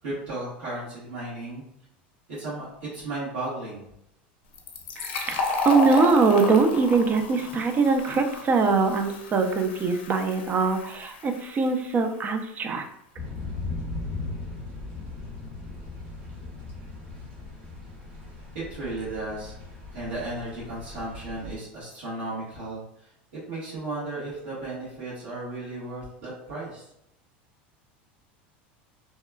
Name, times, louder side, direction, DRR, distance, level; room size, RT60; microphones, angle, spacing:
voice 1, 0.0-1.6 2.3-3.8 18.5-19.5 19.9-23.1 23.5-26.9, right 2 dB, 80° right, -11 dB, 1.4 m, -35 dB
Fill (with liquid), 4.5-11.9, left 3 dB, 80° left, 0.5 m, -32 dB
voice 2, 5.0-12.8, right 4 dB, 30° right, 6 dB, 0.4 m, -23 dB
Thunder / Rain, 13.2-21.6, left 3 dB, 55° right, 1.2 m, -38 dB
2.8 x 2.3 x 2.2 m, 0.79 s
supercardioid pair, 110°, 6 cm